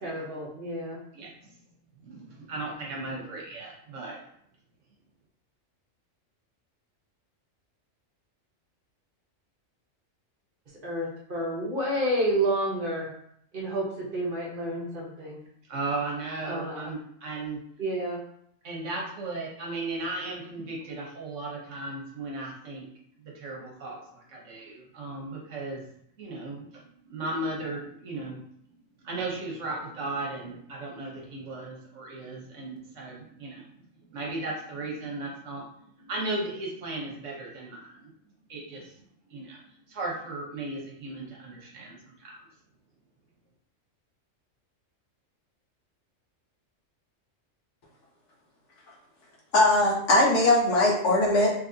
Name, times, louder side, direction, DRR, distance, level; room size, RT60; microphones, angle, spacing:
voice 1, 0.0-1.0 10.8-13.1 13.5-15.4 16.5-16.9 17.8-18.2, right 1 dB, 45° right, -3 dB, 1.0 m, -30 dB
voice 2, 1.1-1.5 2.0-4.2 15.7-17.6 18.6-22.9 23.2-25.8 26.2-26.7 27.1-28.4 29.0-33.7 34.1-35.7 36.0-38.1 38.5-38.9 39.3-39.6 39.9-42.4, right 2 dB, 70° right, -2 dB, 1.3 m, -36 dB
voice 3, 49.5-51.5, left 2 dB, 65° left, -2 dB, 1.2 m, -20 dB
3.9 x 2.8 x 2.6 m, 0.68 s
omnidirectional pair, 1.3 m